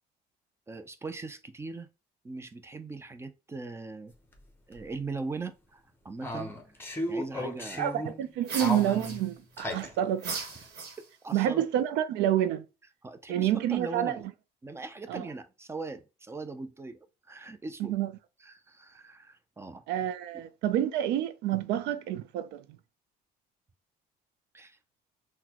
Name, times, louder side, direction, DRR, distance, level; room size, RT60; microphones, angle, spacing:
voice 1, 0.7-1.9 2.2-4.1 4.7-6.5 7.1-7.8 10.4-10.7 11.0-11.6 13.0-14.2 14.6-17.0 17.3-18.0 18.4-19.8 20.3-20.4 24.5-24.8, right 3 dB, 15° right, 0.4 m, -40 dB
sound 1, 4.3-4.4 4.7-4.8 6.2-8.3 8.6-10.0, left 1 dB, 15° left, 0.7 m, -35 dB
voice 2, 7.8-10.4 11.3-12.6 13.3-14.2 15.1-15.3 17.8-18.1 19.9-22.6, right 11 dB, 90° right, 0.4 m, -28 dB
sound 2, 8.4-9.6 10.2-11.4, right 4 dB, 70° right, 1.1 m, -38 dB
3.8 x 2.1 x 2.8 m
cardioid pair, 110°, 17 cm